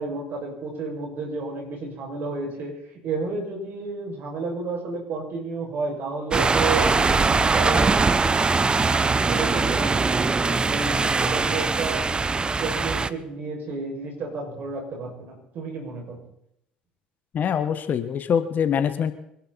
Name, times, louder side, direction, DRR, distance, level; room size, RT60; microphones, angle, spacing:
voice 1, 0.0-2.7 3.0-8.1 9.2-12.1 12.6-16.2, right 3 dB, 50° right, 0 dB, 6.5 m, -31 dB
sound 1, 6.3-13.1, right 4 dB, 20° right, 0.7 m, -21 dB
voice 2, 17.3-19.1, left 8 dB, 45° left, 11 dB, 1.5 m, -24 dB
25.0 x 12.0 x 4.3 m, 0.76 s
hypercardioid pair, 60°, 4 cm